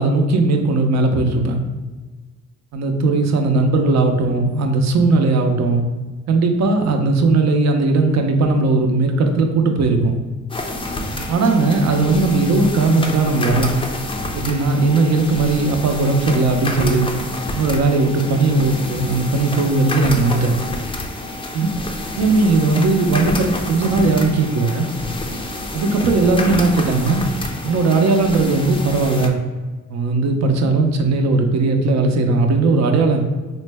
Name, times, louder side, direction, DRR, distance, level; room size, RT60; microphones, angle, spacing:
voice 1, 0.0-1.6 2.7-5.8 6.3-10.2 11.3-13.8 14.3-17.1 17.5-20.5 21.5-21.7 22.2-24.9 25.7-27.2 27.6-29.4 29.9-33.2, right 3 dB, 60° right, 5 dB, 0.6 m, -17 dB
sound 1, 10.5-29.3, left 2 dB, 20° left, 0.4 m, -28 dB
3.8 x 2.1 x 3.3 m, 1.3 s
cardioid pair, 90°, 30 cm